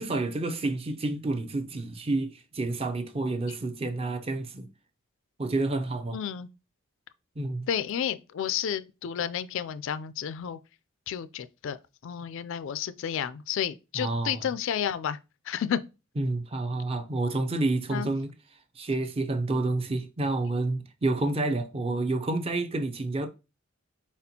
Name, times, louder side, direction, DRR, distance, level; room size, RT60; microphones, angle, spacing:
voice 1, 0.0-4.7 5.4-6.2 7.4-7.7 13.9-14.5 16.2-18.3 18.8-23.3, right 2 dB, 30° right, 0.5 m, -29 dB
voice 2, 6.1-6.5 7.7-10.6 11.1-11.8 12.0-15.2 15.5-15.8 17.9-18.1, left 8 dB, 65° left, 0.3 m, -31 dB
4.3 x 4.2 x 2.7 m
head